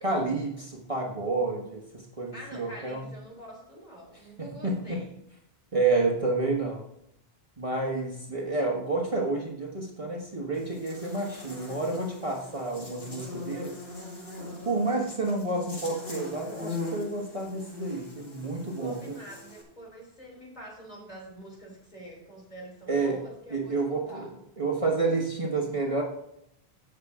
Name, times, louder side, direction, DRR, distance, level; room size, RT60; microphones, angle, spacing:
voice 1, 0.0-3.1 4.4-5.1 5.7-6.8 7.6-13.7 14.4-19.2 22.9-23.2 23.5-24.3 24.6-26.0, right 3 dB, 35° right, -1 dB, 1.3 m, -29 dB
voice 2, 2.3-5.1 18.8-24.3, right 1 dB, 40° left, -2 dB, 3.4 m, -46 dB
Buzz, 10.5-19.6, left 2 dB, 70° left, 2.7 m, -41 dB
15.5 x 5.8 x 3.6 m, 0.77 s
omnidirectional pair, 1.1 m